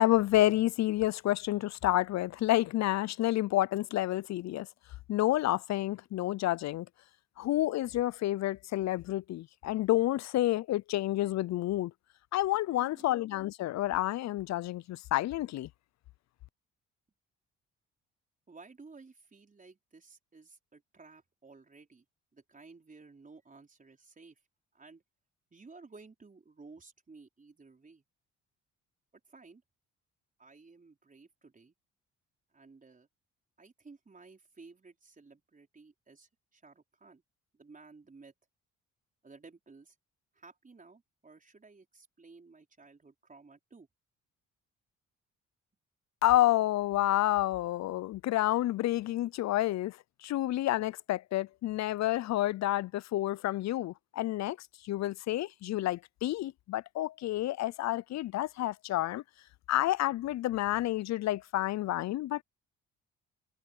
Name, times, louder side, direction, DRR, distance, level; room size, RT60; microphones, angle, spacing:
voice 1, 0.0-4.7 5.1-6.9 7.4-11.9 12.3-15.7 46.2-49.9 50.2-54.6 54.8-59.2 59.7-62.4, left 15 dB, 65° left, 0.5 m, -29 dB
voice 2, 12.7-13.2 18.5-22.1 22.3-24.4 24.7-25.0 25.5-28.0 29.3-29.6 30.4-31.7 32.5-33.1 33.6-37.2 37.5-38.3 39.2-39.9 40.3-43.9 49.6-49.7, right 4 dB, 25° right, 4.8 m, -55 dB
cardioid pair, 90°, 30 cm